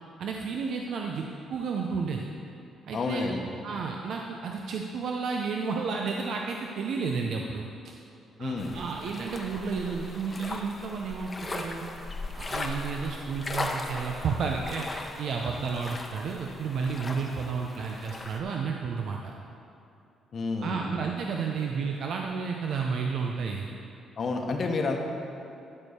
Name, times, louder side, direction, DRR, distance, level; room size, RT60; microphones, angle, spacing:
voice 1, 0.2-1.2 1.5-2.3 2.8-3.2 3.6-7.7 8.4-11.8 12.3-19.3 20.6-23.7, right 5 dB, 70° right, 1 dB, 0.6 m, -32 dB
voice 2, 2.9-3.4 8.4-8.7 20.3-20.9 24.2-25.0, left 3 dB, 50° left, 2 dB, 1.2 m, -29 dB
sound 1, 8.6-18.4, left 2 dB, 25° left, 0.9 m, -38 dB
12.0 x 4.6 x 6.7 m, 2.8 s
cardioid pair, 90°, 0 cm